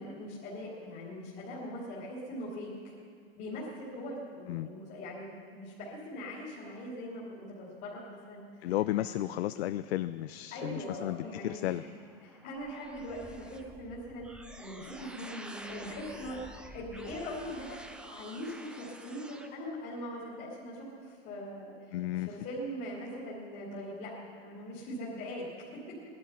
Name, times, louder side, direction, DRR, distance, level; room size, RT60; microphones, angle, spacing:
voice 1, 0.0-2.9 3.4-9.1 10.5-11.9 12.2-16.4 16.7-17.8 18.1-21.7 22.1-25.5 25.7-25.9, equal, 35° left, -7 dB, 2.9 m, -41 dB
voice 2, 8.6-11.8 21.9-22.4, left 15 dB, 85° left, 13 dB, 0.5 m, -33 dB
sound 1, 11.8-19.5, right 1 dB, 5° right, 0.4 m, -49 dB
19.0 x 11.5 x 5.6 m, 2.2 s
supercardioid pair, 155°, 31 cm